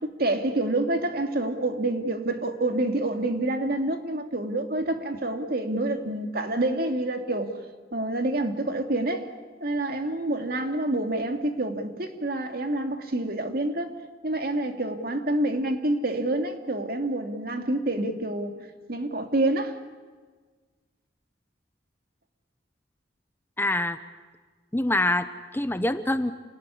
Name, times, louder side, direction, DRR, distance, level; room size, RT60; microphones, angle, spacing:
voice 1, 0.0-7.5 7.9-9.3 9.6-13.9 14.2-18.5 18.9-19.8, right 2 dB, 55° right, 5 dB, 2.5 m, -27 dB
voice 2, 23.6-24.0 24.7-26.3, left 1 dB, 10° left, 11 dB, 0.8 m, -25 dB
28.5 x 19.0 x 9.9 m, 1.4 s
head